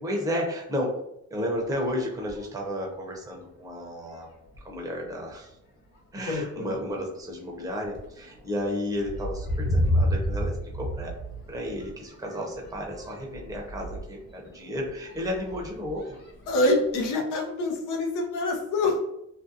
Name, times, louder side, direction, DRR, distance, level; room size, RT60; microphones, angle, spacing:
voice 1, 0.0-1.0 1.3-4.3 4.6-5.6 6.1-11.1 11.5-16.2, equal, 10° right, -1 dB, 0.6 m, -32 dB
sound 1, 1.5-2.6 3.3-3.4 3.9-4.2 4.5-5.1 5.7-6.0 6.4-17.0, equal, 35° left, 1.0 m, -33 dB
voice 2, 6.3-6.8 16.5-19.0, left 2 dB, 85° left, 1 dB, 0.7 m, -26 dB
2.5 x 2.1 x 2.6 m, 0.84 s
cardioid pair, 90°, 30 cm